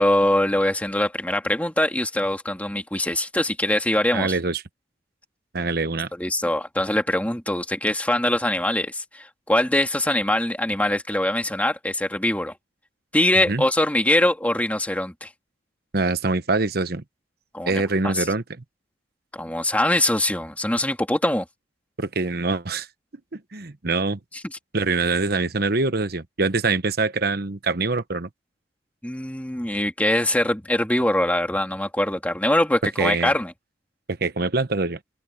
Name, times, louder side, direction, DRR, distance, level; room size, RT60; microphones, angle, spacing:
voice 1, 0.0-4.4 6.1-12.5 13.1-15.3 17.5-18.3 19.3-21.4 24.4-24.6 29.0-33.5, left 1 dB, 10° left, 2.4 m, -23 dB
voice 2, 4.1-4.6 5.5-6.1 13.5-13.6 15.9-17.0 17.7-18.4 22.0-22.9 23.3-24.2 24.7-28.3 33.0-33.3 34.1-35.0, right 3 dB, 55° right, 1.1 m, -24 dB
head